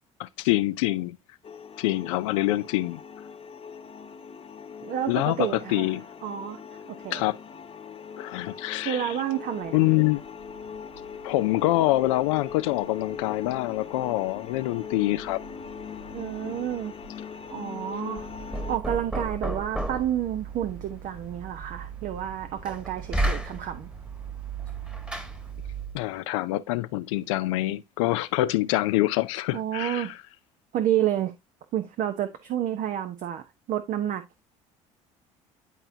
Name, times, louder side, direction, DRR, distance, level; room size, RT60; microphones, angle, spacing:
voice 1, 0.2-1.2 1.8-3.0 5.1-6.0 7.1-7.4 8.2-9.2 9.7-10.2 11.2-15.4 25.9-30.2, left 17 dB, 80° left, 0.4 m, -25 dB
sound 1, 1.4-18.8, left 6 dB, 35° left, 1.1 m, -41 dB
voice 2, 4.8-5.9 6.2-6.6 6.9-7.2 8.8-9.8 16.1-16.9 17.5-18.3 18.7-23.9 29.5-30.1 30.7-31.3 31.7-34.2, right 11 dB, 55° right, 0.9 m, -29 dB
sound 2, 9.6-25.5, right 3 dB, 90° right, 4.6 m, -53 dB
Knock, 18.2-26.1, right 2 dB, 5° right, 1.4 m, -34 dB
11.0 x 4.4 x 2.7 m
hypercardioid pair, 65°, 16 cm